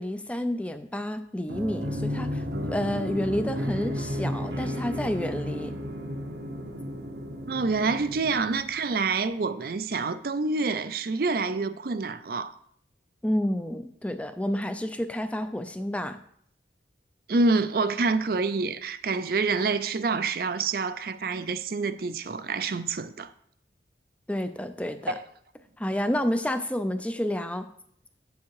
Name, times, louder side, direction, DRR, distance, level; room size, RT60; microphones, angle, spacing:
voice 1, 0.0-5.7 13.2-16.2 24.3-25.1 25.8-27.7, left 1 dB, 5° left, 0.4 m, -30 dB
sound 1, 1.5-9.0, equal, 70° right, 1.0 m, -33 dB
voice 2, 7.5-12.5 17.3-23.3 25.1-25.2, right 4 dB, 55° right, 0.5 m, -27 dB
8.3 x 7.2 x 4.7 m
head